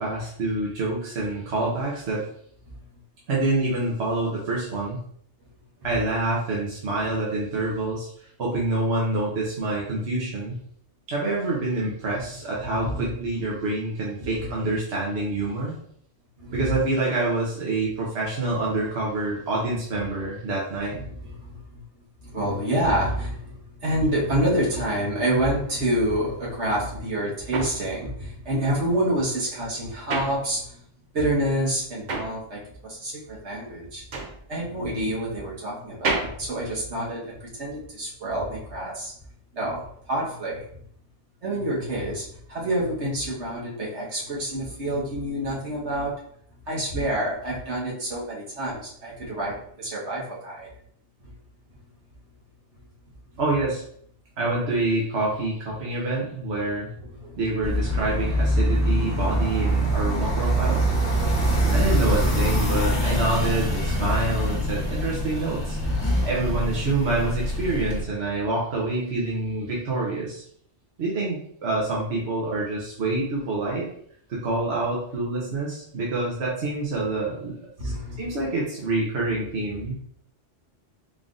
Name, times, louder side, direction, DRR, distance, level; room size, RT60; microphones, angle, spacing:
voice 1, 0.0-2.2 3.3-5.0 5.8-8.1 8.4-10.6 11.1-15.7 16.5-21.0 53.4-53.8 54.4-56.9 57.4-60.9 61.7-65.8 66.2-70.4 71.0-73.9 74.3-79.9, right 2 dB, 70° right, -5 dB, 1.2 m, -27 dB
voice 2, 12.6-13.4 14.2-14.7 16.4-16.7 20.9-21.8 22.2-30.8 31.1-34.0 34.5-39.1 39.5-40.8 41.4-46.1 46.7-50.7 51.2-51.3 57.1-57.5 58.6-59.1 64.0-64.2 65.8-66.3 77.8-78.4, right 1 dB, 85° right, -5 dB, 1.6 m, -28 dB
sound 1, 27.3-31.0 31.3-37.6, right 3 dB, 50° right, 0.7 m, -33 dB
sound 2, 57.6-68.0, equal, 60° left, 1.3 m, -24 dB
3.8 x 3.7 x 2.5 m, 0.64 s
omnidirectional pair, 1.2 m